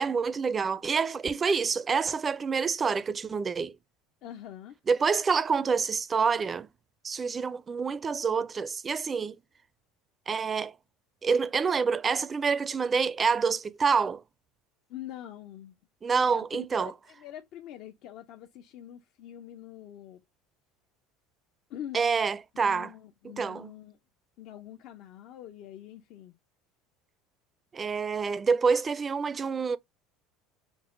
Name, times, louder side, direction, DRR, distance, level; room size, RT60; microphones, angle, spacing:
voice 1, 0.0-3.8 4.9-6.7 7.0-9.4 10.3-10.7 11.2-14.2 16.0-16.9 21.9-22.9 23.2-23.7 27.7-29.8, right 5 dB, 25° right, 0.4 m, -27 dB
voice 2, 4.2-4.7 14.9-15.7 16.2-16.4 16.7-20.2 21.7-22.0 22.6-24.0 24.4-26.3, left 11 dB, 60° left, 0.5 m, -44 dB
6.0 x 2.0 x 2.5 m
supercardioid pair, 110°, 0 cm